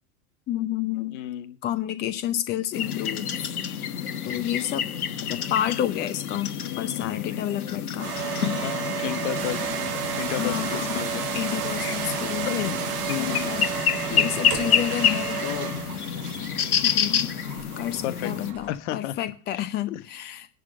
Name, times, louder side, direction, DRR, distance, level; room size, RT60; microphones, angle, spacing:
voice 1, 0.5-1.2 1.6-3.3 4.2-4.9 5.3-8.1 10.3-11.1 11.3-12.5 13.1-13.7 14.1-15.7 16.8-17.3 17.8-20.5, left 12 dB, 25° left, 13 dB, 0.7 m, -30 dB
voice 2, 1.1-1.6 6.7-7.1 8.6-9.6 10.2-11.3 12.4-13.6 14.6-14.9 18.0-18.3 18.7-19.2 19.9-20.0, left 13 dB, 50° left, 15 dB, 1.0 m, -32 dB
sound 1, 2.7-18.5, left 8 dB, 70° left, 1.4 m, -29 dB
sound 2, 8.0-16.1, right 6 dB, 80° right, 2.4 m, -31 dB
sound 3, 9.3-18.8, right 10 dB, 40° right, 1.7 m, -37 dB
11.0 x 5.3 x 8.5 m, 0.36 s
figure-of-eight pair, 95°, 46 cm